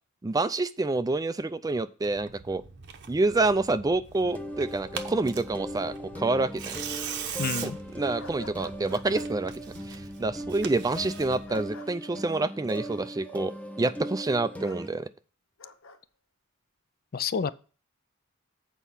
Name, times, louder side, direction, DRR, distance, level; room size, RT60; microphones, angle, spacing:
voice 1, 0.2-2.6 3.1-6.7 7.6-9.5 9.9-15.1, right 2 dB, 15° right, 0.4 m, -28 dB
Tearing, 2.0-11.6, right 7 dB, 55° right, 0.8 m, -41 dB
sound 1, 4.2-14.9, equal, 5° left, 0.7 m, -39 dB
voice 2, 7.4-7.8 17.1-17.5, left 6 dB, 45° left, 0.4 m, -29 dB
sound 2, 8.2-9.3 11.5-11.9 14.6-14.8 15.6-16.0, left 2 dB, 65° left, 0.9 m, -46 dB
8.3 x 4.5 x 5.6 m
head